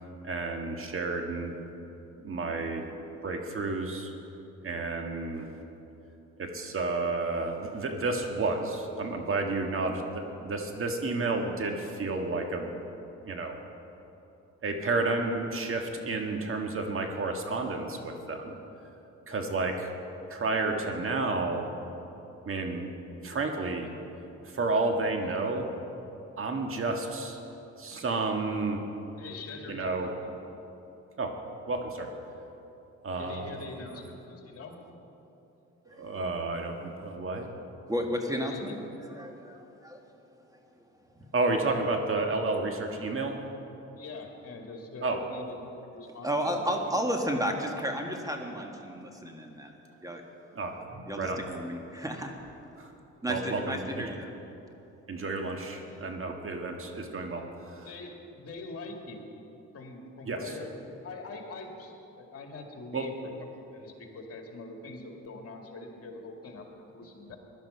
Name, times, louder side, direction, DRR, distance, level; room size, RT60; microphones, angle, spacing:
voice 1, 0.2-1.6 2.2-2.9 3.2-4.1 4.6-5.5 6.4-12.9 13.2-13.6 14.6-18.6 19.3-19.9 20.3-21.7 22.4-22.9 23.2-23.9 24.4-25.7 26.4-27.4 27.8-28.8 29.7-30.1 31.2-31.3 31.7-32.1 33.0-33.9 35.9-37.5 41.3-43.5 45.0-45.2 50.5-51.4 52.8-52.9 53.3-54.1 55.1-57.9 60.3-60.5 62.9-63.0, right 3 dB, 45° right, 3 dB, 1.6 m, -31 dB
voice 2, 29.2-30.3 33.2-34.8 38.4-38.8 43.9-46.8 57.8-59.2 59.7-60.8 61.0-67.4, left 3 dB, 50° left, 2 dB, 2.3 m, -43 dB
voice 3, 35.9-36.2 37.9-38.8 39.1-41.3 46.2-50.2 51.1-52.3 53.2-54.3, equal, 10° right, 3 dB, 1.7 m, -33 dB
16.0 x 11.5 x 5.6 m, 3.0 s
cardioid pair, 90°, 30 cm